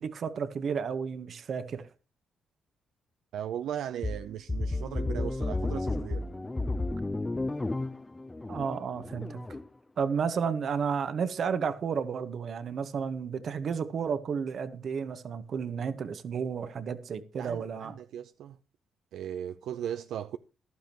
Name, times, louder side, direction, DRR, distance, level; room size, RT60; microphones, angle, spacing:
voice 1, 0.0-1.9 8.5-9.4 10.0-18.0, right 6 dB, 55° right, 1.3 m, -32 dB
voice 2, 3.3-6.3 17.4-18.6 19.1-20.4, right 10 dB, 80° right, 0.6 m, -37 dB
sound 1, 4.0-9.7, left 2 dB, 15° left, 0.6 m, -32 dB
14.5 x 12.0 x 3.0 m
cardioid pair, 90°, 0 cm